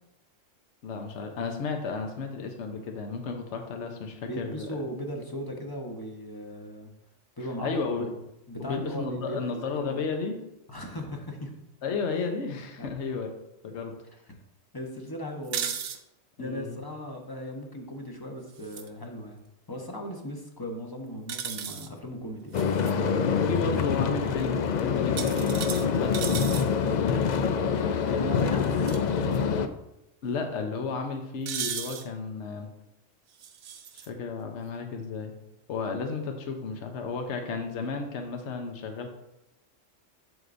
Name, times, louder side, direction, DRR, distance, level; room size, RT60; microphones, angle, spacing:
voice 1, 0.8-4.8 7.6-8.1 8.6-10.4 11.8-13.3 13.6-13.9 16.4-16.8 23.4-27.2 27.6-27.9 30.2-32.7 33.9-35.3 35.7-39.1, left 4 dB, 65° left, 4 dB, 1.2 m, -33 dB
voice 2, 4.3-6.9 7.4-8.2 8.5-10.1 10.7-11.5 12.8-12.9 14.7-15.7 16.4-22.6 28.0-29.6, equal, 20° left, 1 dB, 0.9 m, -38 dB
sound 1, 15.4-16.0 18.5-18.9 21.3-21.9 22.5-22.9 25.2-26.7 28.7-29.0 29.3-29.4 31.5-32.1 33.4-34.1, right 8 dB, 70° right, 1.0 m, -35 dB
sound 2, 22.5-29.7, left 6 dB, 85° left, 0.4 m, -26 dB
8.0 x 7.7 x 2.6 m, 0.88 s
omnidirectional pair, 1.3 m